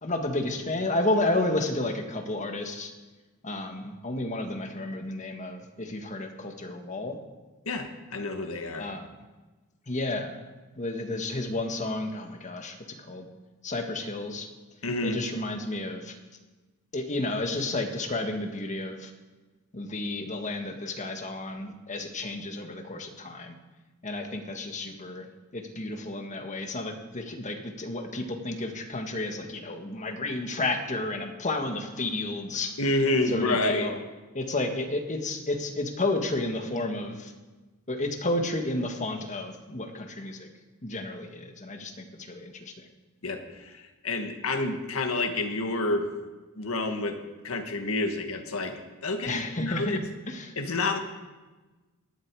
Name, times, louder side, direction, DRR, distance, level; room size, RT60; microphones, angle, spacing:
voice 1, 0.0-2.9 3.4-7.2 8.8-9.1 9.9-10.4 10.8-12.8 13.1-13.2 13.6-14.5 15.0-16.1 16.9-19.1 19.7-23.5 24.0-25.2 25.5-32.7 33.3-34.0 34.3-37.3 37.9-40.5 40.8-42.7 49.2-50.0 50.3-50.5, left 2 dB, 35° left, 5 dB, 1.6 m, -31 dB
voice 2, 7.6-8.9 14.8-15.2 32.8-33.9 43.2-46.1 46.6-47.2 47.4-50.0 50.5-51.0, left 2 dB, 70° left, 5 dB, 1.7 m, -29 dB
18.0 x 11.5 x 4.8 m, 1.2 s
head